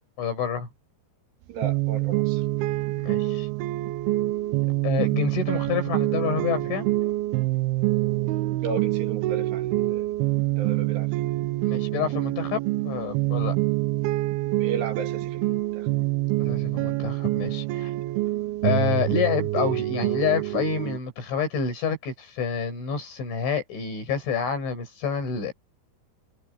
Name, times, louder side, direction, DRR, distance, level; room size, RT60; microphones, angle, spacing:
voice 1, 0.2-0.7 3.0-3.5 4.8-6.9 11.7-13.6 16.4-17.9 18.6-25.5, left 6 dB, 75° left, 9.1 m, -28 dB
voice 2, 1.5-2.4 8.6-10.1 10.6-11.1 14.6-15.9, right 5 dB, 65° right, 4.5 m, -34 dB
sound 1, 1.6-21.0, right 18 dB, 85° right, 2.2 m, -26 dB
omnidirectional pair, 5.4 m